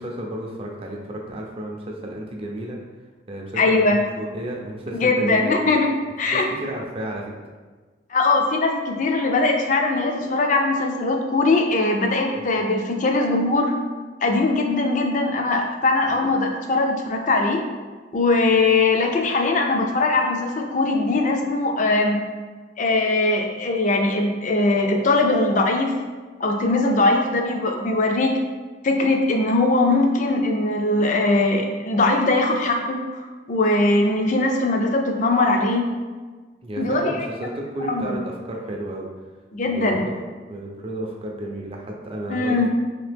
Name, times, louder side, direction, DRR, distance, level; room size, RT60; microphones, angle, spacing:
voice 1, 0.0-2.8 3.3-5.6 6.3-7.4 12.4-12.5 36.6-39.1 39.6-40.2 40.5-42.7, right 1 dB, 30° right, 0 dB, 0.4 m, -32 dB
voice 2, 3.6-4.0 4.9-5.9 6.2-6.5 8.1-13.7 14.2-17.6 18.1-22.2 22.8-25.9 26.4-28.4 28.8-33.0 33.5-35.9 36.8-37.3 37.8-38.1 39.5-40.0 42.3-42.7, left 2 dB, 40° left, 2 dB, 0.4 m, -20 dB
2.8 x 2.8 x 3.4 m, 1.4 s
head